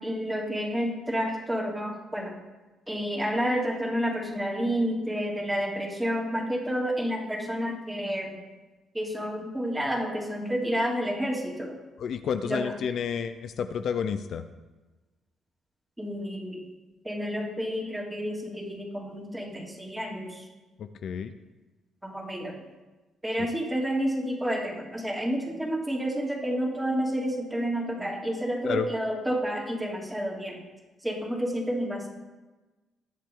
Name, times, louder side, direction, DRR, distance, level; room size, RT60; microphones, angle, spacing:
voice 1, 0.0-2.3 2.9-8.3 8.9-11.7 12.4-12.7 16.0-16.6 17.0-20.4 22.0-22.5 23.2-30.6 31.0-32.1, equal, 10° right, -2 dB, 3.0 m, -30 dB
voice 2, 12.0-14.4 20.8-21.3 28.6-28.9, left 7 dB, 65° left, 10 dB, 0.6 m, -30 dB
20.0 x 7.5 x 3.8 m, 1.2 s
cardioid pair, 90°, 0 cm